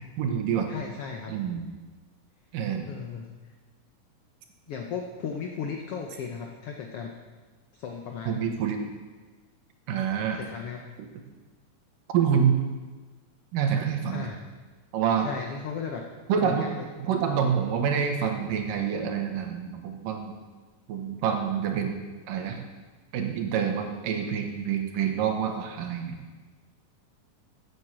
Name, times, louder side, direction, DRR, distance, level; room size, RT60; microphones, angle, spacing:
voice 1, 0.2-0.7 1.3-1.6 2.5-2.9 8.3-8.8 9.9-10.4 12.1-12.6 13.5-14.3 14.9-15.3 16.3-16.7 17.0-20.3 20.9-22.6 23.1-26.2, right 7 dB, 80° right, 4 dB, 2.8 m, -27 dB
voice 2, 0.7-1.4 2.9-3.2 4.7-7.1 7.7-8.5 10.3-10.8 14.1-14.4 15.2-16.0 16.4-16.9, left 6 dB, 80° left, 2 dB, 1.3 m, -36 dB
9.5 x 8.1 x 7.5 m, 1.3 s
omnidirectional pair, 3.9 m